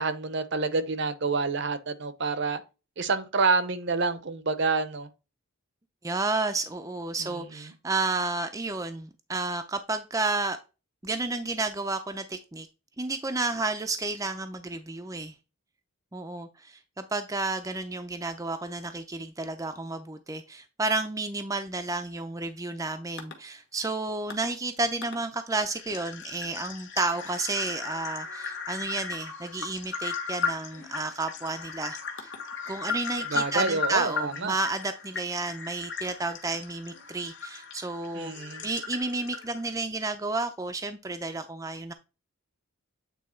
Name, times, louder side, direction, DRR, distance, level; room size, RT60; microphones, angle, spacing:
voice 1, 0.0-2.6 3.0-5.1 7.2-7.4 33.3-34.6 38.1-38.6, right 4 dB, 55° right, 0.7 m, -28 dB
voice 2, 6.0-10.6 11.0-12.7 13.0-15.3 16.1-32.3 32.7-38.3 38.6-41.9, right 3 dB, 15° right, 0.5 m, -31 dB
sound 1, 23.2-23.3 24.3-24.5 25.0-25.2 25.5-39.7, left 5 dB, 55° left, 1.4 m, -36 dB
8.4 x 3.3 x 4.4 m
head